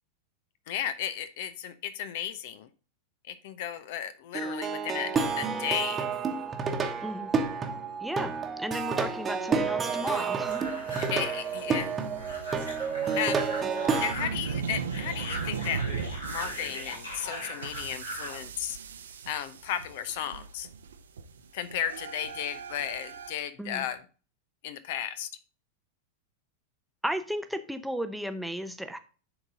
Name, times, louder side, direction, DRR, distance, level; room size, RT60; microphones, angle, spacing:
voice 1, 0.7-2.7 3.3-6.1 10.9-11.9 13.2-13.4 13.9-15.8 16.3-18.8 19.3-20.7 21.5-24.0 24.6-25.3, left 10 dB, 50° left, 13 dB, 0.6 m, -34 dB
Plucked string instrument, 4.3-14.1, right 5 dB, 20° right, 1.1 m, -30 dB
voice 2, 8.0-8.3 8.6-10.7 23.6-23.8 27.0-29.0, equal, ahead, 8 dB, 0.6 m, -34 dB
sound 1, 10.0-18.4, equal, 75° left, 3.1 m, -40 dB
sound 2, 10.5-23.3, right 6 dB, 65° right, 0.7 m, -39 dB
9.8 x 4.0 x 3.8 m, 0.37 s
figure-of-eight pair, 90°, 0 cm